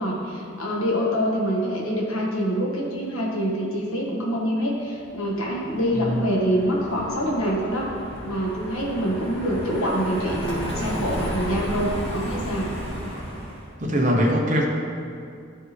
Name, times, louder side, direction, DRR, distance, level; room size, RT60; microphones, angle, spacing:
voice 1, 0.0-7.9 8.2-12.7, equal, 75° left, -3 dB, 1.5 m, -25 dB
Car passing by, 5.2-13.7, equal, 25° left, 1.6 m, -33 dB
voice 2, 13.8-14.7, equal, 35° right, 0 dB, 0.8 m, -21 dB
12.5 x 4.5 x 3.3 m, 2.3 s
head